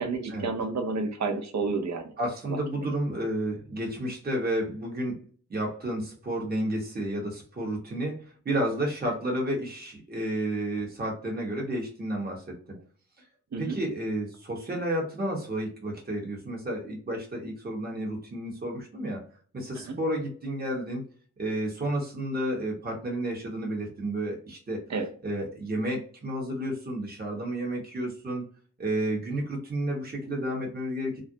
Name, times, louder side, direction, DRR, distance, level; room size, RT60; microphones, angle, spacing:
voice 1, 0.0-2.1 2.5-2.9 13.5-13.8 19.8-20.0 24.9-25.1, right 4 dB, 60° right, 5 dB, 0.7 m, -31 dB
voice 2, 2.2-5.2 5.5-12.6 13.6-19.2 19.5-21.0 21.4-24.8 25.2-28.4 28.8-31.2, right 1 dB, 30° right, -1 dB, 1.0 m, -31 dB
2.4 x 2.1 x 2.6 m, 0.43 s
cardioid pair, 60°, 32 cm